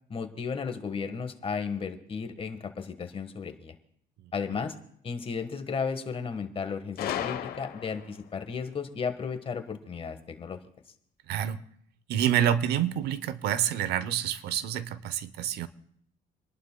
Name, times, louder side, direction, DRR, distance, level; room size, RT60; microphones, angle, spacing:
voice 1, 0.1-3.7 4.3-4.7 5.0-10.6, left 5 dB, 35° left, 8 dB, 1.4 m, -34 dB
Gunshot gunfire, 7.0-8.2, left 10 dB, 65° left, 1.0 m, -34 dB
voice 2, 11.3-11.6 12.1-15.7, right 10 dB, 75° right, 15 dB, 0.7 m, -28 dB
29.5 x 11.5 x 2.2 m, 0.68 s
cardioid pair, 110°, 17 cm